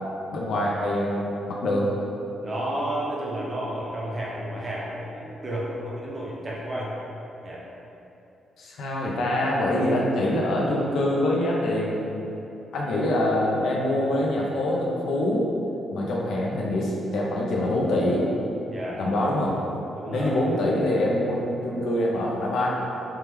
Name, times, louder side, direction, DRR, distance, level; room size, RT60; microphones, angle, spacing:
voice 1, 0.3-2.0 8.6-12.3 12.7-15.5 15.9-18.3 19.0-19.6 20.1-22.7, left 1 dB, 70° left, -3 dB, 0.4 m, -25 dB
voice 2, 2.4-6.9 7.4-7.6 18.7-19.0 20.0-20.4, right 1 dB, 25° right, -5 dB, 0.5 m, -32 dB
2.9 x 2.2 x 3.3 m, 2.9 s
cardioid pair, 155°, 0 cm